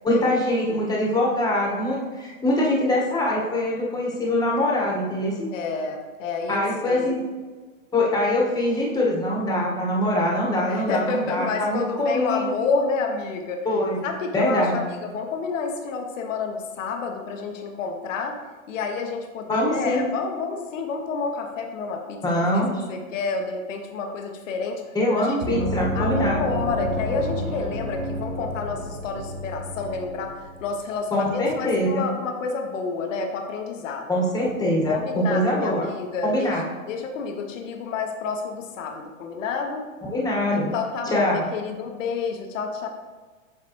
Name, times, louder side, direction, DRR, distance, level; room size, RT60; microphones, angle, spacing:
voice 1, 0.0-5.5 6.5-7.2 7.9-12.5 13.6-14.0 14.3-14.7 19.5-20.0 22.2-22.7 24.9-26.4 31.1-32.0 34.1-35.9 36.2-36.6 40.1-40.7 41.0-41.5, left 1 dB, 10° left, -3 dB, 1.5 m, -23 dB
voice 2, 5.5-7.2 10.6-13.7 14.0-18.4 18.7-22.6 22.9-24.8 25.2-25.7 25.9-34.1 34.9-36.5 36.9-39.9 40.5-42.9, left 4 dB, 65° left, 4 dB, 1.1 m, -29 dB
Gong, 25.4-30.7, equal, 65° right, 1.6 m, -29 dB
7.6 x 5.7 x 3.1 m, 1.4 s
hypercardioid pair, 120°, 41 cm